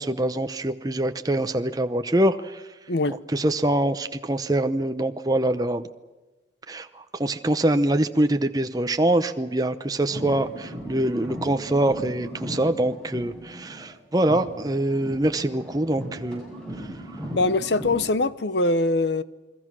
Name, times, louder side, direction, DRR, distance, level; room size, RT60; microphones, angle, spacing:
voice 1, 0.0-2.6 3.1-5.9 6.7-16.4 16.8-16.9, right 1 dB, 20° right, 0.8 m, -24 dB
sound 1, 10.0-13.9 14.2-18.1, equal, 5° left, 7.7 m, -37 dB
voice 2, 17.3-19.2, left 2 dB, 70° left, 0.9 m, -22 dB
29.0 x 21.5 x 6.2 m
head